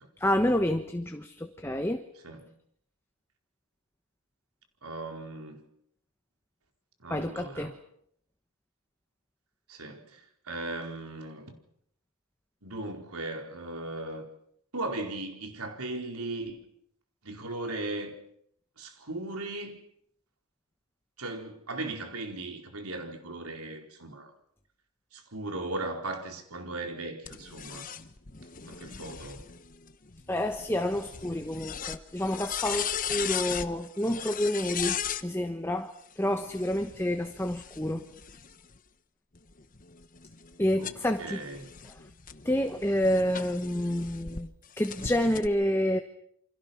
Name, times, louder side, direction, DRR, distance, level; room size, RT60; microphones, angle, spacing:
voice 1, 0.2-2.0 7.1-7.7 30.3-35.9 36.2-38.0 40.6-41.4 42.4-44.5 44.8-46.0, left 1 dB, 10° left, 1.2 m, -28 dB
voice 2, 4.8-5.6 7.0-7.7 9.7-11.6 12.6-14.3 14.7-16.6 17.2-18.1 18.8-19.8 21.2-24.3 25.1-27.9 28.7-29.4 40.7-41.7, right 2 dB, 85° right, 4.6 m, -37 dB
sound 1, 27.3-35.3 36.4-38.8 39.3-44.4 44.8-45.5, left 8 dB, 35° left, 1.1 m, -38 dB
29.0 x 25.0 x 5.9 m
head